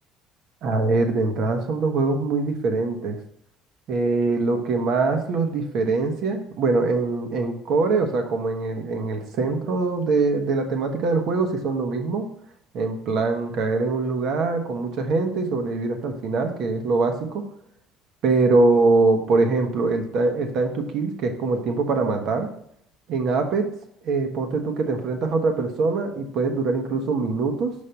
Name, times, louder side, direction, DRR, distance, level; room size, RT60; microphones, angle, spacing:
voice 1, 0.6-3.2 3.9-12.2 12.7-17.4 18.2-22.5 23.1-23.7 24.0-27.7, right 3 dB, 60° right, 5 dB, 1.4 m, -23 dB
5.5 x 5.3 x 5.3 m, 0.71 s
hypercardioid pair, 70°, 0 cm